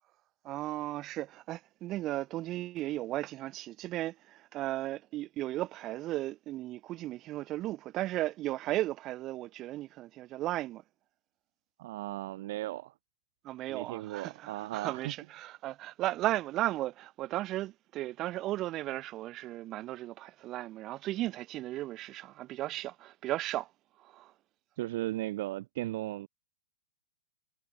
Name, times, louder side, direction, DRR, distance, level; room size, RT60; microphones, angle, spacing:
voice 1, 0.4-10.8 13.4-23.7 24.0-24.3, right 15 dB, 30° right, 2.0 m, -35 dB
voice 2, 11.8-12.9 13.7-15.1 24.8-26.3, right 16 dB, 55° right, 0.4 m, -36 dB
hypercardioid pair, 145°, 0 cm